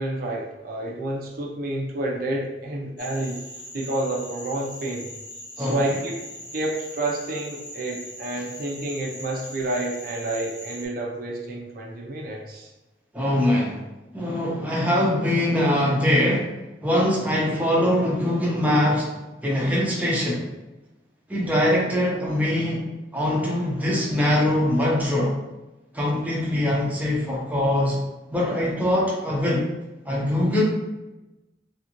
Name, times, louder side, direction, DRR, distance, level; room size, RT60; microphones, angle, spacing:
voice 1, 0.0-3.4 3.7-5.1 5.6-6.2 6.5-12.7, right 2 dB, 55° right, -2 dB, 0.6 m, -29 dB
sound 1, 3.0-10.9, left 1 dB, 80° left, 0.9 m, -40 dB
voice 2, 13.1-13.8 14.1-16.5 16.8-19.1 19.4-20.5 21.3-22.9 23.1-25.4 25.9-28.0 28.3-29.7 30.1-30.6, left 1 dB, 10° right, -4 dB, 0.6 m, -22 dB
3.4 x 2.5 x 2.9 m, 1.0 s
head